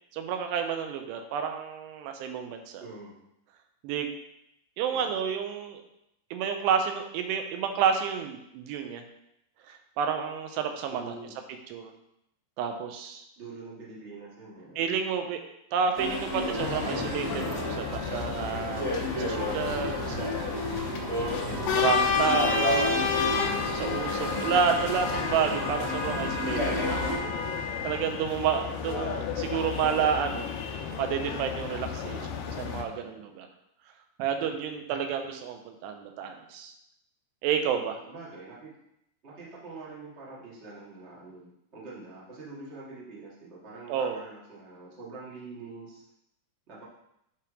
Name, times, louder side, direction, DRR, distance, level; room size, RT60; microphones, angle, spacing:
voice 1, 0.1-2.8 3.8-4.1 4.8-5.8 6.3-9.0 9.7-11.0 11.7-11.9 12.6-13.2 14.8-15.4 15.7-20.5 21.1-21.2 21.7-22.9 23.7-30.5 31.0-32.2 32.6-33.5 34.2-36.7 37.4-38.0 43.9-44.2, right 7 dB, 90° right, 5 dB, 2.9 m, -30 dB
voice 2, 2.8-3.1 4.9-5.2 10.9-11.3 13.4-14.9 21.4-21.8 24.1-24.5 32.0-32.3 38.0-38.7 39.2-46.0 46.7-46.8, right 3 dB, 55° right, -6 dB, 0.7 m, -45 dB
sound 1, 15.9-27.2, left 1 dB, 30° right, 1.6 m, -32 dB
sound 2, 16.6-32.8, left 6 dB, 80° left, 2.2 m, -32 dB
8.4 x 3.5 x 5.0 m, 0.80 s
omnidirectional pair, 4.8 m